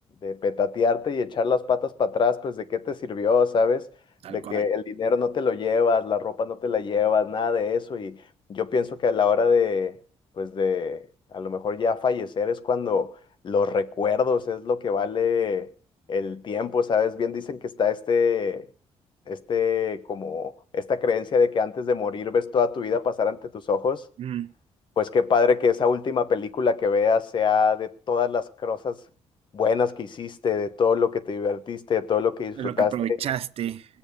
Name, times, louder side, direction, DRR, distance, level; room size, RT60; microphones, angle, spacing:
voice 1, 0.2-3.9 4.3-8.2 8.5-9.9 10.4-11.1 11.3-13.1 13.4-15.7 16.1-18.7 19.3-24.0 25.0-29.0 29.5-32.9, left 5 dB, 45° left, 1.1 m, -24 dB
voice 2, 4.2-4.7 24.2-24.5 32.6-33.9, right 10 dB, 60° right, 0.6 m, -31 dB
20.5 x 7.2 x 6.9 m
cardioid pair, 135°, 11 cm